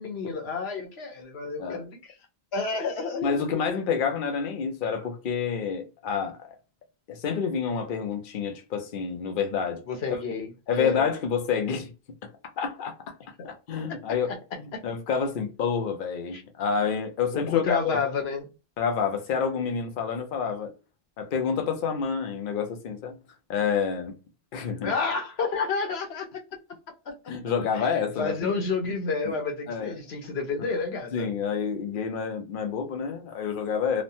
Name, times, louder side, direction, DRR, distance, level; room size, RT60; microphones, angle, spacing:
voice 1, 0.0-2.0 2.5-3.8 9.9-11.0 14.7-14.8 16.3-16.4 17.3-18.5 24.8-26.3 27.1-27.2 27.7-27.9 28.2-31.3, left 4 dB, 90° left, 1.0 m, -30 dB
voice 2, 3.2-6.5 7.1-9.8 10.1-10.2 10.7-11.9 12.6-13.1 13.4-14.3 14.6-17.9 18.8-20.7 21.2-23.2 23.5-24.1 24.5-24.9 27.3-28.6 29.2-29.4 29.7-29.9 30.2-30.7 31.1-34.0, left 6 dB, 60° left, 0.8 m, -28 dB
3.1 x 2.1 x 2.6 m
omnidirectional pair, 1.0 m